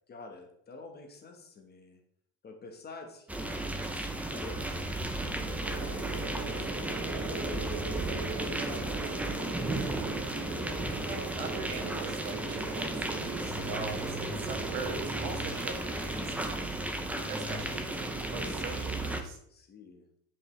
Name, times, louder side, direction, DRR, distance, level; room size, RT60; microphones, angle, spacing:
voice 1, 0.1-2.0 2.4-7.8 8.3-10.1 19.5-20.1, left 3 dB, 25° left, 3 dB, 1.3 m, -49 dB
sound 1, 3.3-19.2, right 1 dB, 5° right, 0.5 m, -34 dB
sound 2, 5.6-19.1, right 4 dB, 35° right, 1.2 m, -41 dB
voice 2, 11.0-16.7 17.2-19.4, right 5 dB, 80° right, 3 dB, 2.0 m, -42 dB
9.5 x 5.4 x 3.2 m, 0.68 s
cardioid pair, 140°, 40 cm